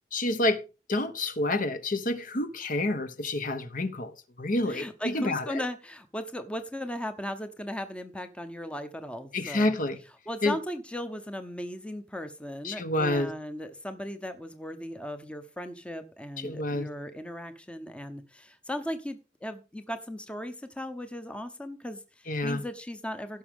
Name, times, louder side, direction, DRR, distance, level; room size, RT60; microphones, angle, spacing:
voice 1, 0.1-0.6 0.9-4.1 4.4-5.4 9.3-10.0 10.4-10.6 12.6-13.3 16.4-16.9 22.3-22.6, left 2 dB, 50° left, 1.0 m, -28 dB
voice 2, 4.7-9.7 10.3-23.4, equal, 5° left, 0.8 m, -37 dB
16.5 x 6.1 x 3.6 m
head